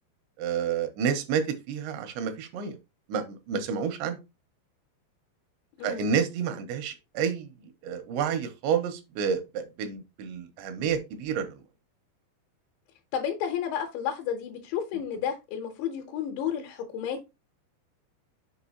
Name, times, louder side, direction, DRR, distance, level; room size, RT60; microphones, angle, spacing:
voice 1, 0.4-2.8 3.1-4.2 5.8-7.5 7.8-11.6, right 7 dB, 85° right, 3.1 m, -29 dB
voice 2, 5.8-6.1 13.1-17.3, left 8 dB, 80° left, 3.1 m, -32 dB
7.3 x 5.0 x 2.8 m
omnidirectional pair, 5.3 m